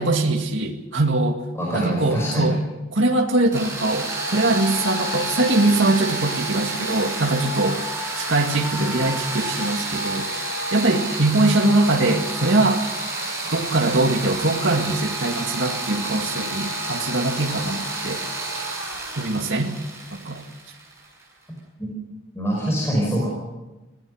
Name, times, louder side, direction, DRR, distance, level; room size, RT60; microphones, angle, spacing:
voice 1, 0.0-1.4 1.7-2.6 3.0-7.8 8.2-10.3 10.7-12.8 13.5-18.2 19.2-19.8 20.1-20.4, right 2 dB, 65° right, 2 dB, 2.1 m, -22 dB
voice 2, 1.5-2.6 21.8-21.9 22.3-23.3, right 1 dB, 15° left, -3 dB, 5.3 m, -24 dB
sound 1, 3.5-21.2, right 2 dB, 15° right, 7.7 m, -29 dB
25.5 x 18.0 x 6.4 m, 1.1 s
head